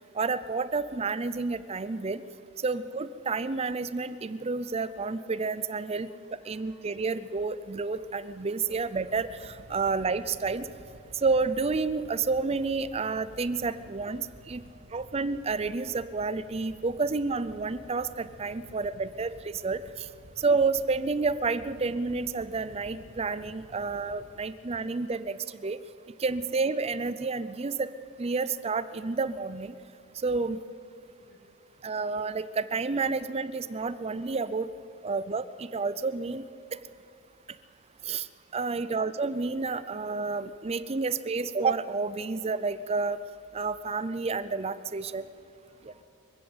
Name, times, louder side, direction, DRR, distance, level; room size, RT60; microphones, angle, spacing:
voice 1, 0.1-2.2 2.6-6.1 6.5-10.7 11.1-14.6 14.9-20.1 20.4-25.8 26.2-27.9 28.2-29.7 30.2-30.6 31.8-34.7 35.0-36.4 36.7-36.8 38.0-38.3 38.5-43.2 43.5-45.2 45.8-45.9, right 4 dB, 25° right, 15 dB, 0.5 m, -30 dB
voice 2, 6.4-6.8 14.6-14.8 31.0-31.9 38.7-38.8 45.1-45.3 45.6-46.0, left 1 dB, 60° left, -1 dB, 3.4 m, -64 dB
sound 1, 7.7-24.3, equal, 60° right, 2.1 m, -52 dB
24.5 x 15.5 x 8.0 m, 2.7 s
head